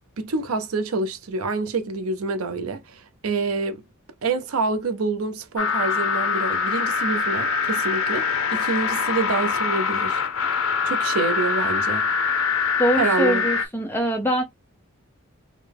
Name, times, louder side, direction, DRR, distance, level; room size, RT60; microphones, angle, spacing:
voice 1, 0.2-3.8 4.2-10.2 10.8-12.1 13.0-13.5, right 3 dB, 85° right, 0.6 m, -27 dB
sound 1, 5.6-13.7, left 5 dB, 70° left, 0.7 m, -24 dB
voice 2, 12.8-14.4, right 1 dB, 10° left, 0.8 m, -23 dB
3.7 x 2.1 x 3.4 m
head